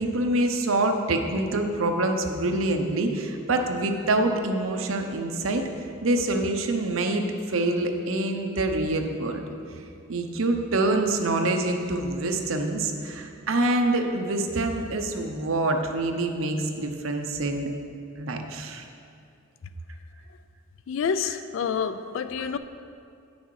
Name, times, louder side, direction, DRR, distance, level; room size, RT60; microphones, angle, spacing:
voice 1, 0.0-5.6 6.0-9.4 10.1-17.7 18.2-18.8 21.8-21.9 22.4-22.6, right 2 dB, 75° right, 0.8 m, -26 dB
voice 2, 20.9-22.6, left 6 dB, 65° left, 0.3 m, -28 dB
9.2 x 6.2 x 4.7 m
head